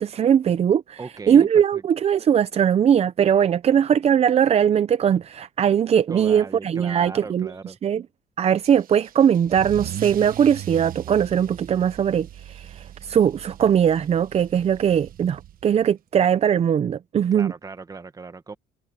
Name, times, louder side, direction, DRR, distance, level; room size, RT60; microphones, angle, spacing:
voice 1, 0.0-1.0 1.3-7.5 7.8-8.0 8.4-17.5, right 8 dB, 40° right, 0.6 m, -20 dB
voice 2, 1.0-1.8 6.1-7.8 17.3-18.6, right 4 dB, 20° right, 1.5 m, -37 dB
Car / Engine starting / Accelerating revving vroom, 8.6-15.8, right 12 dB, 55° right, 1.2 m, -39 dB
cardioid pair, 110°, 17 cm